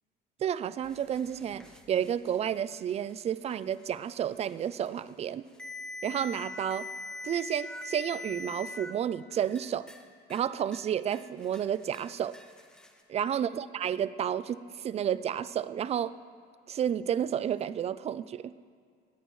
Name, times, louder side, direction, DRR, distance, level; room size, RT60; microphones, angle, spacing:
voice 1, 0.4-5.5 6.0-6.9 7.2-9.9 10.3-12.4 13.1-16.2 16.7-18.5, right 9 dB, 35° right, 16 dB, 0.4 m, -31 dB
sound 1, 0.8-8.9 9.3-10.0 10.3-10.8 11.1-13.0, left 2 dB, 5° left, 1.0 m, -44 dB
19.5 x 17.0 x 3.2 m, 2.1 s
cardioid pair, 150°, 19 cm